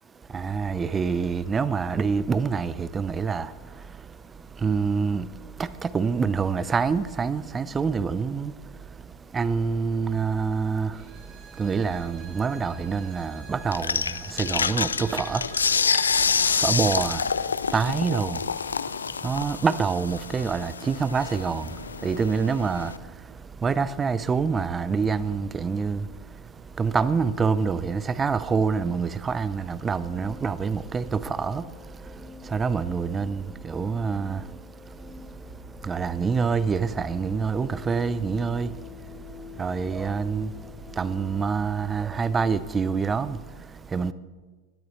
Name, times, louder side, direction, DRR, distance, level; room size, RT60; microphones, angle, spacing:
voice 1, 0.3-44.1, right 5 dB, 20° right, 0.6 m, -27 dB
Bowed string instrument, 10.9-16.2, right 5 dB, 35° right, 3.2 m, -48 dB
sound 1, 13.7-23.0, left 6 dB, 80° left, 0.3 m, -27 dB
sound 2, 29.8-41.4, left 6 dB, 15° left, 1.3 m, -45 dB
19.0 x 12.5 x 3.2 m
figure-of-eight pair, 95°, 0 cm